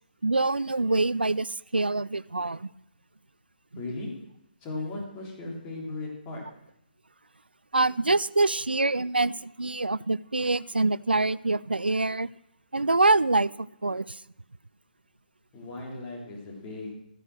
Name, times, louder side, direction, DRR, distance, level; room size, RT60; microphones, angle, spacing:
voice 1, 0.2-2.7 7.7-12.3 12.7-14.2, right 2 dB, 80° right, 20 dB, 0.4 m, -25 dB
voice 2, 3.8-4.1 4.6-6.4 15.5-16.9, left 2 dB, 20° left, -2 dB, 3.8 m, -37 dB
14.0 x 10.0 x 6.2 m, 0.79 s
figure-of-eight pair, 140°, 5 cm